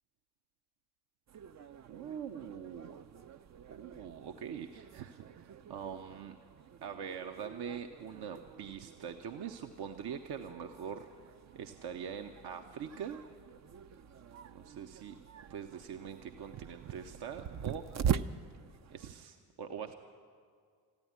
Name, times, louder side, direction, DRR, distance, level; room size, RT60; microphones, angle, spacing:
sound 1, 1.3-19.2, right 8 dB, 35° right, 0.6 m, -43 dB
voice 1, 1.9-3.0 3.7-6.4 6.8-11.1 11.5-13.2 14.5-15.1 15.5-18.2 18.9-19.9, right 7 dB, 55° right, 6 dB, 0.9 m, -43 dB
14.0 x 10.5 x 9.4 m, 2.1 s
hypercardioid pair, 45°, 48 cm